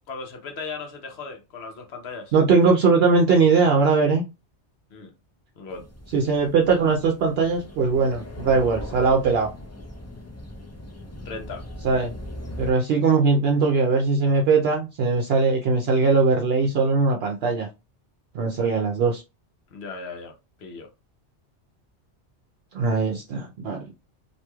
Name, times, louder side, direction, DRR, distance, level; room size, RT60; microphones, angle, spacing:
voice 1, 0.1-2.3 4.9-5.1 5.6-5.9 11.2-11.6 19.7-20.3 20.6-20.9, left 4 dB, 70° left, 1.0 m, -37 dB
voice 2, 2.3-4.2 6.1-9.5 11.8-12.1 12.6-17.7 18.3-19.2 22.7-23.8, right 4 dB, 65° right, 0.8 m, -20 dB
sound 1, 5.7-12.7, left 1 dB, 20° left, 0.4 m, -39 dB
2.9 x 2.6 x 2.2 m
omnidirectional pair, 1.2 m